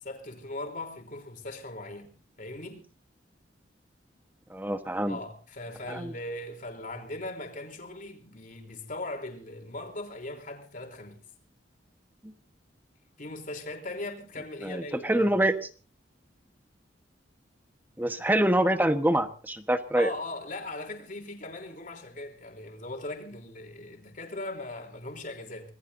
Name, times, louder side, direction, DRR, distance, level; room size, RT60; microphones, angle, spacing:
voice 1, 0.0-2.8 5.1-11.2 13.2-15.5 19.9-25.7, left 2 dB, 45° left, 3.6 m, -39 dB
voice 2, 4.5-5.2 5.9-6.1 12.2-12.3 14.6-15.5 18.0-20.1, right 1 dB, 10° right, 1.3 m, -25 dB
25.5 x 19.5 x 2.7 m
head